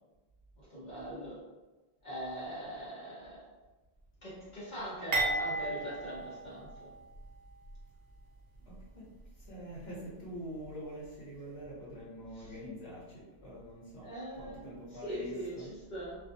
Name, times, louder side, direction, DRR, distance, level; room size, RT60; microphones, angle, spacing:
voice 1, 0.6-1.4 2.0-3.5 4.2-6.9 12.3-12.5 14.0-14.7 15.0-16.2, equal, 45° left, -8 dB, 1.0 m, -41 dB
sound 1, 5.1-7.3 7.6-7.8 8.7-8.8, right 2 dB, 55° right, 0.8 m, -34 dB
voice 2, 8.7-9.1 9.5-14.1 14.3-15.7, equal, 70° left, -7 dB, 1.2 m, -45 dB
2.5 x 2.3 x 2.5 m, 1.2 s
omnidirectional pair, 1.1 m